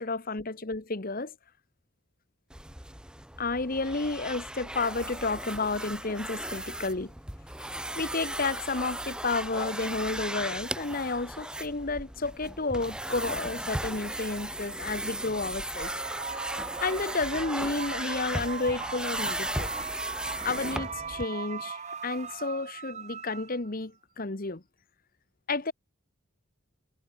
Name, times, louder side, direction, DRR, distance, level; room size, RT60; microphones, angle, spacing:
voice 1, 0.0-1.3 3.4-7.1 8.0-15.9 16.8-19.7 20.4-24.6 25.5-25.7, left 3 dB, 40° left, 1.2 m, -31 dB
sound 1, 2.5-21.3, right 1 dB, 5° right, 1.9 m, -36 dB
sound 2, 15.7-23.8, right 5 dB, 30° right, 1.7 m, -39 dB
head